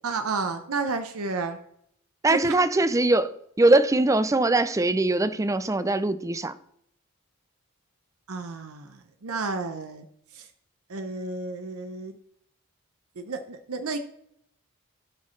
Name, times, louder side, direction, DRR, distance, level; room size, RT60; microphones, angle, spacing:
voice 1, 0.0-1.6 2.3-2.6 8.3-10.1 10.3-10.5 10.9-12.2 13.2-14.0, right 4 dB, 80° right, 0.8 m, -31 dB
voice 2, 2.2-3.3 3.6-6.5, right 2 dB, 15° right, 0.4 m, -21 dB
16.0 x 6.2 x 3.2 m
head